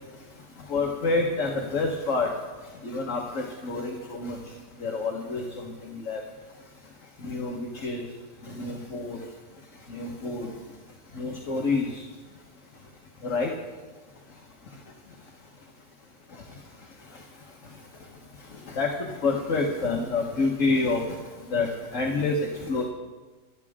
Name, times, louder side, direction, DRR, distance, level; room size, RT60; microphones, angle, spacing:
voice 1, 0.7-2.3 2.8-3.8 4.1-4.4 4.8-5.4 6.1-6.2 7.2-8.0 8.6-9.2 9.9-10.5 11.2-11.9 13.2-13.5 18.8-18.9 19.2-21.0 21.5-22.3 22.7-22.8, left 3 dB, 45° left, 0 dB, 1.7 m, -27 dB
26.5 x 9.8 x 3.7 m, 1.3 s
omnidirectional pair, 1.9 m